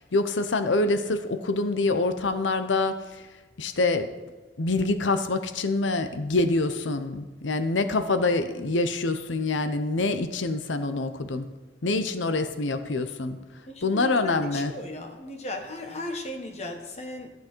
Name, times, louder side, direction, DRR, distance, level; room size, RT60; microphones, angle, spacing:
voice 1, 0.1-3.2 3.6-4.1 4.6-11.5 11.8-13.4 13.8-14.7, left 3 dB, 85° left, 10 dB, 0.7 m, -26 dB
voice 2, 13.7-17.3, left 1 dB, 35° left, 3 dB, 1.3 m, -36 dB
14.5 x 8.3 x 4.5 m, 1.2 s
head